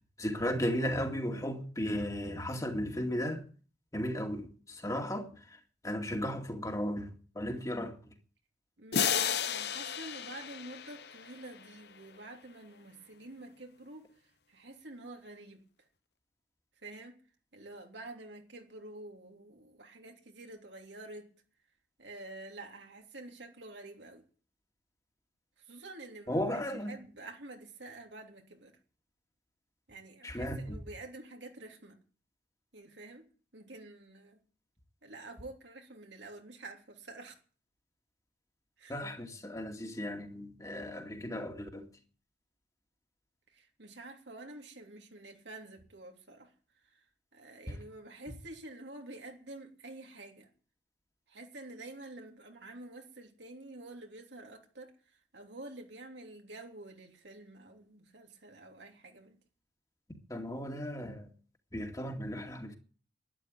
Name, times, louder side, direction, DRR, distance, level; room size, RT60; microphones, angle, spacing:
voice 1, 0.2-3.4 3.9-8.1 26.3-26.9 30.2-30.8 38.9-41.9 60.3-61.3 61.7-62.8, equal, 20° left, 2.3 m, -35 dB
voice 2, 8.8-15.6 16.8-17.2 17.5-21.3 22.0-24.2 25.6-28.8 29.9-32.0 32.7-33.3 33.5-34.4 35.0-37.4 38.8-38.9 43.5-46.5 46.8-47.1 47.3-50.5 51.3-59.4, right 2 dB, 75° right, 3.2 m, -48 dB
sound 1, 8.9-11.7, left 8 dB, 65° left, 1.0 m, -33 dB
12.0 x 11.0 x 9.2 m
head